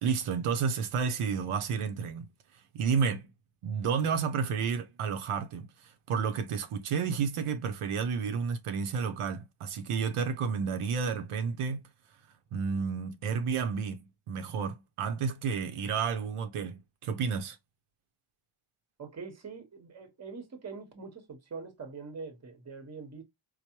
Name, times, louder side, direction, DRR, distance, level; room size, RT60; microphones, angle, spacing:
voice 1, 0.0-2.3 2.7-3.3 3.6-11.8 12.5-14.0 14.3-17.6, right 6 dB, 90° right, 0.7 m, -31 dB
voice 2, 19.0-23.2, right 4 dB, 30° right, 0.9 m, -43 dB
4.5 x 2.1 x 2.8 m
wide cardioid pair, 165°, 49 cm